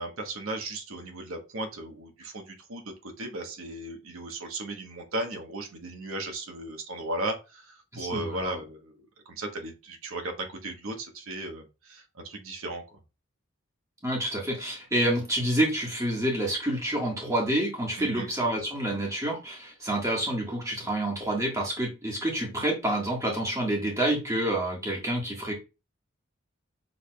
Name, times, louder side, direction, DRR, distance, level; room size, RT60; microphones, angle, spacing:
voice 1, 0.0-9.1 9.4-12.8 18.0-18.3, right 2 dB, 80° right, 3 dB, 1.0 m, -36 dB
voice 2, 7.9-8.6 14.0-25.5, right 1 dB, 15° right, -2 dB, 1.5 m, -28 dB
6.3 x 3.3 x 2.2 m, 0.28 s
head